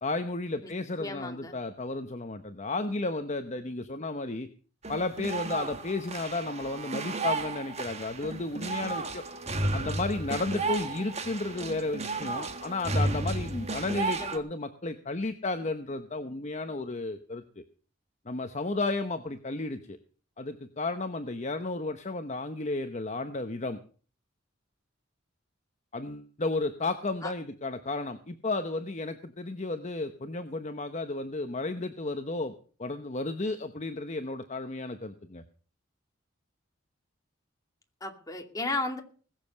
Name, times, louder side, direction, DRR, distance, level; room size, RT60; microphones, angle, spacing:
voice 1, 0.0-4.5 4.9-9.2 9.7-17.6 18.3-20.0 20.4-23.8 25.9-32.5 32.8-35.4, left 2 dB, 35° left, 8 dB, 0.9 m, -33 dB
voice 2, 1.0-1.6 13.9-14.4 27.2-27.3 38.0-39.0, left 2 dB, 20° left, 3 dB, 2.5 m, -35 dB
sound 1, 4.8-14.4, right 2 dB, 35° right, 1.6 m, -33 dB
20.5 x 7.5 x 6.6 m, 0.41 s
head